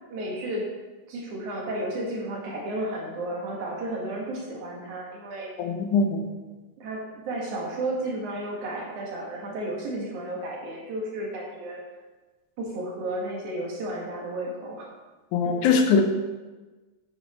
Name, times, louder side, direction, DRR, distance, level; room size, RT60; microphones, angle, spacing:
voice 1, 0.1-0.6 1.1-5.5 6.8-11.8 12.6-14.9 15.4-15.5, right 1 dB, 80° right, -3 dB, 3.4 m, -33 dB
voice 2, 5.6-6.3 15.3-16.0, left 5 dB, 85° left, 5 dB, 2.4 m, -22 dB
8.6 x 7.9 x 4.5 m, 1.2 s
omnidirectional pair, 3.4 m